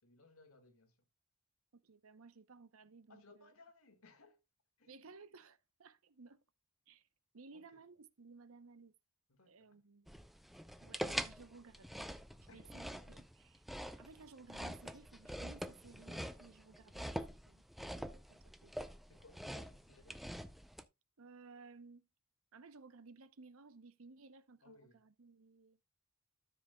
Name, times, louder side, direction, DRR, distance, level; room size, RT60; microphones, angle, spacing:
voice 1, 0.0-1.0 3.1-4.4 4.8-5.1 7.5-7.8 9.3-9.8 12.5-12.7 19.1-20.2 24.6-25.0, left 3 dB, 75° left, 2.0 m, -63 dB
voice 2, 1.7-3.5 4.9-6.4 6.9-7.0 7.3-8.9 9.5-10.3 10.8-11.9 12.4-13.6 14.0-17.6 18.0-18.8 21.2-22.1 22.5-25.8, right 4 dB, 70° right, 0.8 m, -58 dB
sound 1, 10.1-20.8, equal, ahead, 0.5 m, -45 dB
13.0 x 7.3 x 2.2 m
head